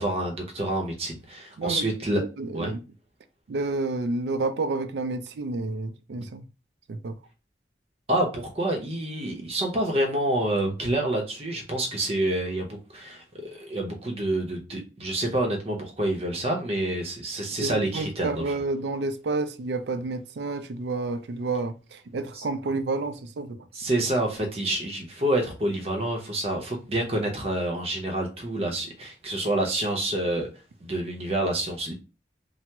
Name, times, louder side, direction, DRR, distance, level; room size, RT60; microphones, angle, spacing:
voice 1, 0.0-2.2 2.5-2.7 8.1-18.4 22.3-22.4 23.7-30.5 30.8-31.9, right 1 dB, 35° right, 0.7 m, -28 dB
voice 2, 2.1-2.8 3.5-6.5 6.9-7.2 17.6-23.7, right 3 dB, 75° right, 0.4 m, -30 dB
3.3 x 2.0 x 2.8 m
head